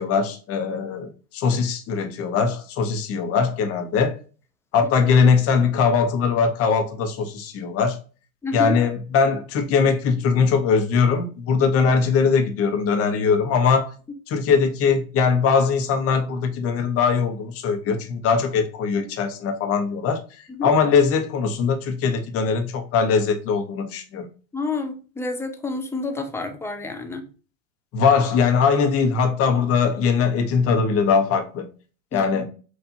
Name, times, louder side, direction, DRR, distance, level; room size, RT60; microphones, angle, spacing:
voice 1, 0.0-4.2 4.7-8.0 8.5-13.9 14.3-20.2 20.6-24.3 27.9-31.7 32.1-32.5, left 5 dB, 35° left, 0.9 m, -21 dB
voice 2, 8.4-8.8 11.6-11.9 20.5-20.7 24.5-27.3 32.1-32.5, left 3 dB, 5° left, 0.4 m, -29 dB
4.4 x 2.5 x 2.5 m
hypercardioid pair, 100°, 39 cm